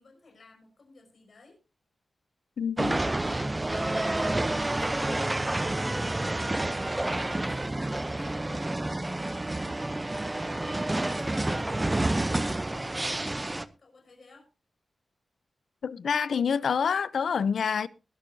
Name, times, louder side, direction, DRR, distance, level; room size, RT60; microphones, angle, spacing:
voice 1, 0.0-1.6 2.8-8.7 9.5-14.5, left 3 dB, 50° left, 5.5 m, -55 dB
voice 2, 2.6-3.0 15.8-17.9, left 6 dB, 80° left, 0.6 m, -27 dB
sound 1, 2.8-13.6, right 2 dB, 15° right, 0.7 m, -29 dB
20.0 x 11.5 x 2.7 m
wide cardioid pair, 140°, 0 cm